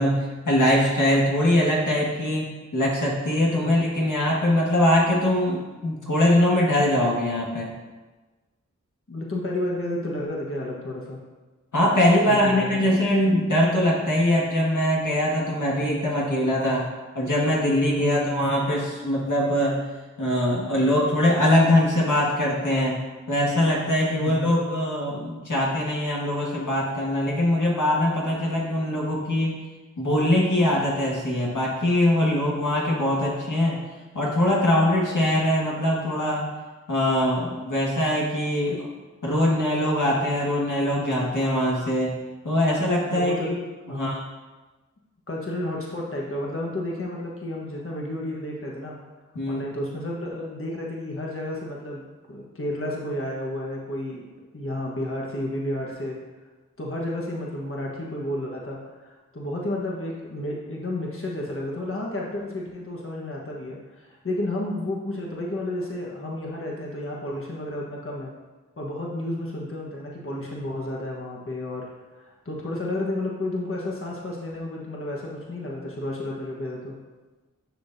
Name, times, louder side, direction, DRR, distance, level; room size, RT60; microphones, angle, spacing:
voice 1, 0.0-7.7 11.7-16.9 17.2-19.9 20.2-23.0 23.3-29.6 30.0-33.8 34.1-36.5 36.9-38.9 39.2-42.1 42.4-43.6 43.9-44.2 49.3-49.7, left 1 dB, 90° left, -4 dB, 1.8 m, -22 dB
voice 2, 9.1-11.2 12.2-12.8 18.0-18.5 24.2-24.6 43.1-43.5 43.9-44.1 45.3-49.0 49.5-52.0 52.3-54.2 54.5-56.2 56.8-68.3 68.8-76.9, left 1 dB, 45° left, -3 dB, 1.3 m, -31 dB
11.5 x 6.2 x 2.7 m, 1.2 s
wide cardioid pair, 60°, 30 cm